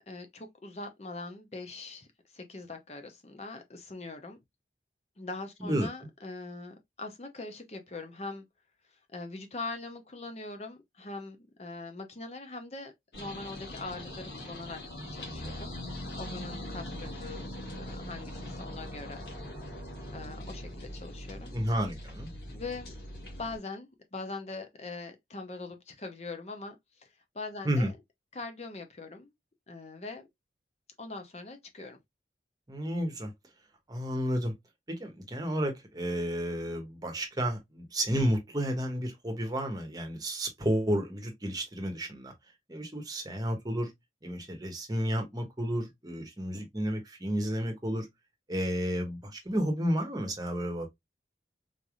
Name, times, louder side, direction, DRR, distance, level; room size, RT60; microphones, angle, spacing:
voice 1, 0.1-2.1 2.3-4.4 5.2-8.4 9.1-14.8 15.1-17.4 17.8-19.2 20.1-21.6 22.5-22.9 23.4-28.0 28.3-29.3 29.7-30.2 31.0-32.0, left 3 dB, 35° left, 0.7 m, -42 dB
sound 1, 13.1-23.6, left 1 dB, 70° left, 1.7 m, -41 dB
voice 2, 21.5-22.3 27.6-27.9 32.7-33.3 33.9-34.5 34.9-42.3 42.7-43.9 44.2-48.1 48.5-50.9, equal, 20° right, 0.9 m, -31 dB
4.0 x 3.3 x 2.3 m
head